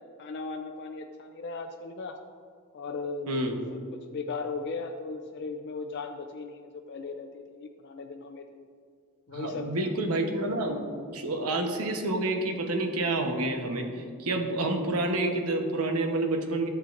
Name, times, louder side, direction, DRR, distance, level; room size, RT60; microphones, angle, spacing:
voice 1, 0.0-2.2 2.7-3.5 3.7-8.6 9.3-9.9, left 4 dB, 50° left, 4 dB, 0.4 m, -37 dB
voice 2, 9.3-16.7, right 2 dB, 80° right, 4 dB, 1.0 m, -29 dB
12.5 x 7.2 x 2.5 m, 2.2 s
head